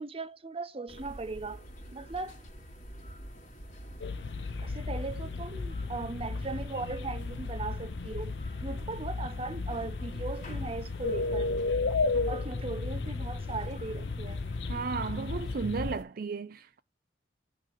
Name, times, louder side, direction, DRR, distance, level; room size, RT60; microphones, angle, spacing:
voice 1, 0.0-1.6 1.9-2.4 4.6-8.3 8.6-11.5 12.3-14.4, right 3 dB, 30° right, 0.8 m, -38 dB
sound 1, 0.9-16.0, equal, 45° left, 2.2 m, -47 dB
sound 2, 4.0-16.0, left 3 dB, 70° left, 0.6 m, -34 dB
voice 2, 14.6-16.8, right 5 dB, 55° right, 0.5 m, -35 dB
9.1 x 3.1 x 5.5 m
head